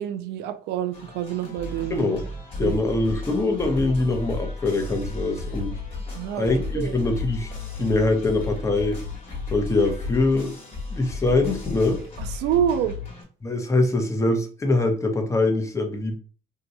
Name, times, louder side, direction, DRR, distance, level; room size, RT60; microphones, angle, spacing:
voice 1, 0.0-2.1 2.6-2.8 6.1-6.5 6.7-7.0 12.2-13.0, right 10 dB, 90° right, 0.4 m, -27 dB
sound 1, 0.9-13.2, left 3 dB, 35° left, 1.3 m, -34 dB
voice 2, 1.9-2.2 2.6-5.7 6.3-9.0 9.5-10.6 10.9-12.0 13.4-16.2, left 2 dB, 15° left, 0.7 m, -23 dB
2.7 x 2.2 x 4.0 m
cardioid pair, 110°, 17 cm